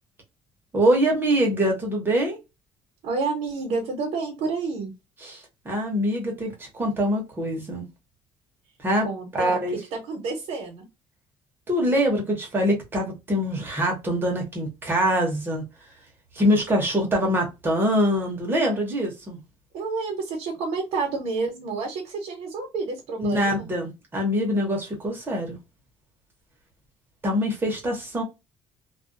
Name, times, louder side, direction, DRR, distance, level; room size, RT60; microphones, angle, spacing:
voice 1, 0.7-2.4 5.2-7.9 8.8-9.1 9.4-9.8 11.7-15.6 16.3-19.4 23.2-25.6 27.2-28.2, equal, 20° right, 0.9 m, -24 dB
voice 2, 3.0-4.9 9.0-9.6 9.9-10.9 19.7-23.7, right 4 dB, 75° right, 0.8 m, -29 dB
2.3 x 2.2 x 2.6 m
cardioid pair, 160°, 11 cm